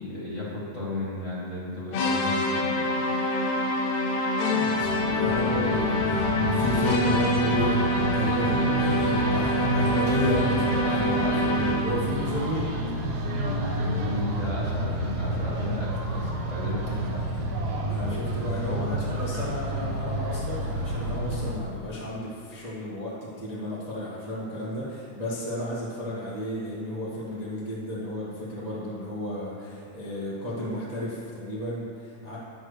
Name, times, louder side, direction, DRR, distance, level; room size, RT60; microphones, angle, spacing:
voice 1, 0.0-2.8 13.4-17.2, left 1 dB, 55° left, -7 dB, 0.8 m, -34 dB
sound 1, 1.9-12.0, left 1 dB, 75° left, 2.1 m, -26 dB
voice 2, 4.4-12.7 16.9-17.4 17.9-32.4, left 1 dB, 30° right, -8 dB, 0.7 m, -33 dB
sound 2, 4.7-21.5, right 1 dB, 65° right, 1.8 m, -29 dB
11.5 x 8.6 x 3.3 m, 2.5 s
omnidirectional pair, 3.6 m